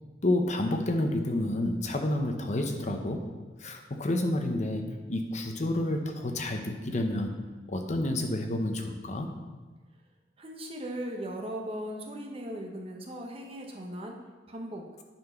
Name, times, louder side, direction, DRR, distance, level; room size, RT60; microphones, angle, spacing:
voice 1, 0.2-3.2 3.6-7.3 7.7-9.3, left 1 dB, 40° left, 4 dB, 0.8 m, -29 dB
voice 2, 10.4-14.9, equal, 35° right, 0 dB, 1.1 m, -38 dB
9.6 x 4.4 x 5.8 m, 1.3 s
head